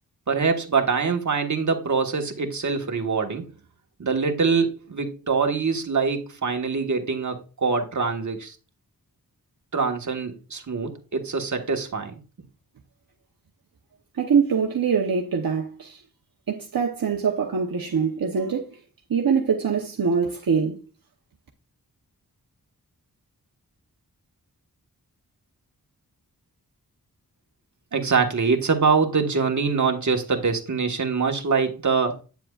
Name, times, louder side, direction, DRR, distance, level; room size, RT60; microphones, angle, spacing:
voice 1, 0.3-3.5 4.0-8.5 9.7-12.1 27.9-32.2, right 5 dB, 50° right, 1.5 m, -24 dB
voice 2, 14.1-16.0 16.5-18.8 19.1-20.8, right 6 dB, 70° right, 1.0 m, -23 dB
9.2 x 7.6 x 2.4 m
wide cardioid pair, 80°, 36 cm